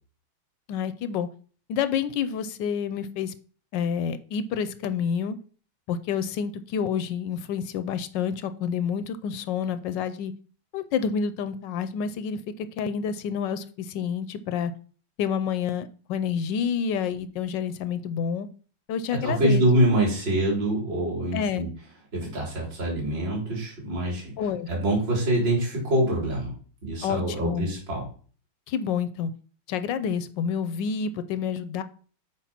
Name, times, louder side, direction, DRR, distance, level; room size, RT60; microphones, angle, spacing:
voice 1, 0.7-1.3 1.7-3.3 3.7-5.4 5.9-10.3 10.7-14.7 15.2-18.5 18.9-19.6 21.3-21.6 24.4-24.7 27.0-27.7 28.7-29.3 29.7-31.8, left 7 dB, 75° left, 12 dB, 1.1 m, -28 dB
voice 2, 19.2-21.7 22.1-24.3 24.7-26.5 26.8-28.0, right 1 dB, 55° right, -4 dB, 3.9 m, -25 dB
6.8 x 5.0 x 5.7 m, 0.41 s
omnidirectional pair, 2.4 m